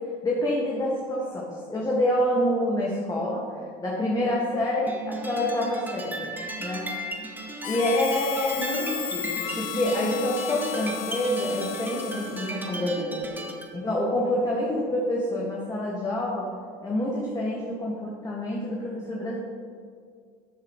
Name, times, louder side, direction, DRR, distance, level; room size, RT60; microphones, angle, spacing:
voice 1, 0.2-3.4 3.8-6.3 6.6-6.8 7.6-13.3 13.7-16.5 16.8-19.4, left 1 dB, 20° left, -5 dB, 2.0 m, -27 dB
sound 1, 4.9-13.7, right 1 dB, 10° right, 1.3 m, -36 dB
Harmonica, 7.6-12.7, left 13 dB, 80° left, 0.6 m, -35 dB
13.0 x 7.6 x 3.2 m, 2.1 s
supercardioid pair, 100°, 18 cm